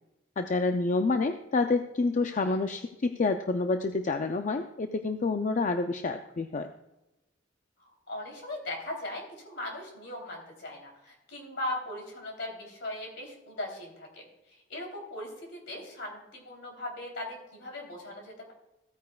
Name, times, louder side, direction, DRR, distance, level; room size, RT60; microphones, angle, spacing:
voice 1, 0.4-6.7, left 3 dB, 40° left, 7 dB, 0.4 m, -28 dB
voice 2, 8.1-18.5, left 1 dB, 65° left, 0 dB, 3.4 m, -39 dB
15.5 x 9.3 x 2.4 m, 0.96 s
head